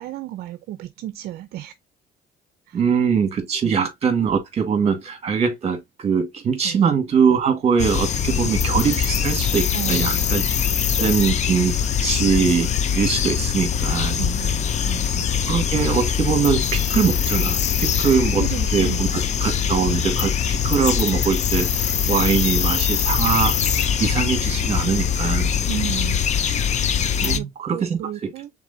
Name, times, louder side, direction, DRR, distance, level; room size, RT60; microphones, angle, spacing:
voice 1, 0.0-1.7 2.7-2.8 3.6-3.8 6.6-6.8 9.7-10.4 14.2-15.3 15.6-15.7 18.4-19.0 25.7-26.3 27.2-28.5, right 13 dB, 70° right, 0.5 m, -33 dB
voice 2, 2.7-10.4 11.0-11.7 12.0-14.2 15.4-19.1 19.4-25.6 27.2-28.3, right 6 dB, 40° right, 1.6 m, -22 dB
sound 1, 7.8-27.4, left 7 dB, 45° left, 0.6 m, -22 dB
4.7 x 3.8 x 2.6 m
cardioid pair, 110°, 17 cm